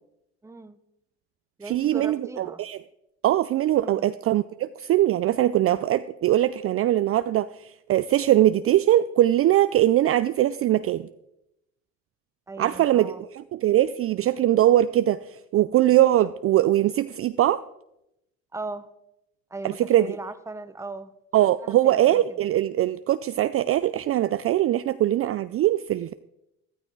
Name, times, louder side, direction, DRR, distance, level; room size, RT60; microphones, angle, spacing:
voice 1, 0.4-0.8 1.6-2.6 3.8-4.1 12.5-13.2 18.5-18.9 19.5-21.1 21.6-22.1, right 3 dB, 10° right, 12 dB, 0.7 m, -38 dB
voice 2, 1.6-2.8 3.2-11.1 12.6-17.6 19.6-20.2 21.3-26.1, right 13 dB, 40° right, 13 dB, 0.4 m, -21 dB
13.5 x 12.5 x 3.9 m, 0.85 s
supercardioid pair, 95°, 36 cm